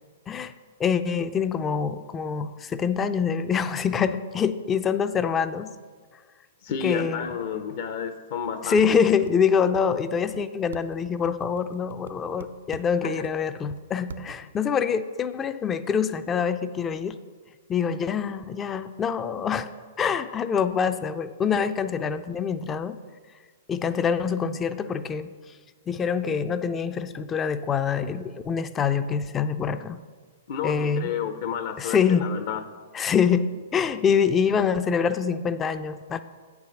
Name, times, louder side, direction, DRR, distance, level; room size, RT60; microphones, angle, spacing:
voice 1, 0.8-5.7 6.8-7.3 8.6-17.2 17.7-19.7 20.0-23.0 23.7-25.3 25.9-30.0 30.6-31.1 31.8-32.2 32.9-33.5 33.7-36.2, left 6 dB, 20° left, 11 dB, 0.4 m, -25 dB
voice 2, 6.6-9.0 13.0-13.1 30.5-32.6, left 7 dB, 55° left, 7 dB, 0.7 m, -31 dB
sound 1, 8.4-8.5 8.8-9.3 9.7-9.8 10.3-10.4 10.7-12.1 12.4-13.3 13.8-13.9 14.1-14.3, right 5 dB, 70° right, 0.4 m, -40 dB
8.1 x 4.8 x 6.1 m, 1.5 s
figure-of-eight pair, 110°, 0 cm